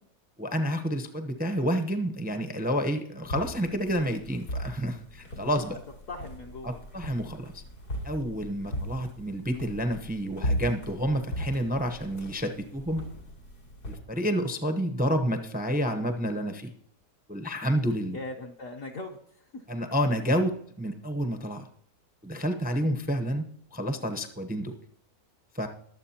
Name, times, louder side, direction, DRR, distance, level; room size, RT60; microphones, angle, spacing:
voice 1, 0.4-5.8 6.6-7.6 8.0-13.1 13.9-16.7 17.3-18.2 19.7-21.7 22.2-23.4 23.7-24.7 25.5-25.7, equal, 10° right, 6 dB, 0.5 m, -29 dB
sound 1, 3.2-14.0, equal, 80° left, 3.3 m, -38 dB
voice 2, 6.1-6.8 18.0-19.6, left 2 dB, 60° left, 0 dB, 1.2 m, -40 dB
21.5 x 7.6 x 2.9 m, 0.69 s
omnidirectional pair, 1.7 m